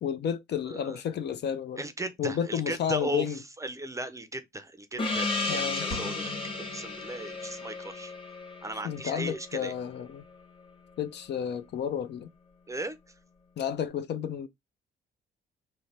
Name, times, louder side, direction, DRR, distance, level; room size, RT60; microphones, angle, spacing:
voice 1, 0.0-1.8 2.2-3.4 5.5-5.9 8.8-10.2 11.0-12.3 13.6-14.5, left 8 dB, 60° left, 0.5 m, -31 dB
voice 2, 0.7-1.0 1.8-6.3 6.7-8.1 8.6-9.7 12.7-13.0, right 2 dB, 15° right, 0.5 m, -37 dB
Gong, 5.0-10.0, left 3 dB, 25° left, 1.1 m, -34 dB
sound 1, 5.9-7.7, left 2 dB, 80° left, 1.6 m, -41 dB
3.1 x 2.1 x 4.0 m
cardioid pair, 90°, 20 cm